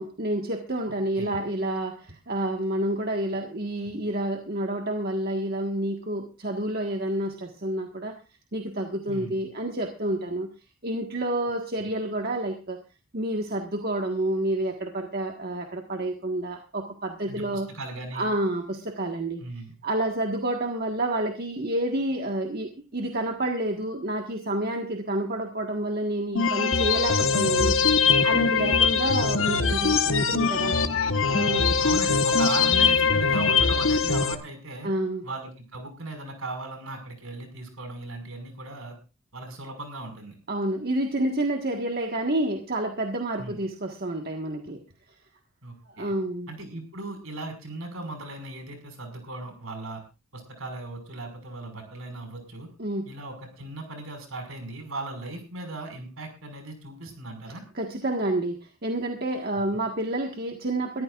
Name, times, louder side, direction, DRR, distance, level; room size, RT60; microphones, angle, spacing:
voice 1, 0.0-8.2 8.5-10.5 10.8-12.8 13.1-17.7 18.1-19.4 19.8-27.8 28.2-30.7 31.3-31.8 34.8-35.2 40.5-44.8 45.9-46.5 52.8-53.0 57.7-61.0, right 1 dB, 45° right, 3 dB, 1.6 m, -29 dB
voice 2, 0.9-1.4 9.1-9.4 17.3-18.3 19.4-19.7 30.7-31.1 31.8-34.9 35.2-39.0 39.3-40.4 43.4-43.6 45.6-46.1 46.5-50.0 50.3-52.7 53.1-57.6, right 2 dB, 70° right, 5 dB, 5.6 m, -37 dB
sound 1, 26.4-34.4, left 5 dB, 65° left, 1.3 m, -22 dB
22.5 x 14.0 x 2.5 m, 0.30 s
head